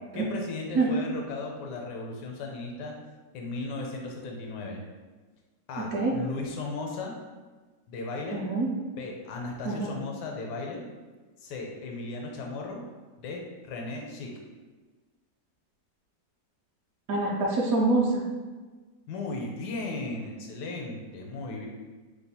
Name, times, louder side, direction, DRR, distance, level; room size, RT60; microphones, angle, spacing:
voice 1, 0.1-2.9 3.3-4.8 5.7-7.1 7.9-8.4 9.0-10.8 11.4-12.8 13.2-14.3 19.1-21.7, left 3 dB, 85° left, 0 dB, 1.2 m, -36 dB
voice 2, 8.3-8.7 9.6-9.9 17.1-18.2, right 3 dB, 70° right, -3 dB, 0.9 m, -25 dB
3.1 x 2.2 x 4.1 m, 1.3 s
omnidirectional pair, 1.8 m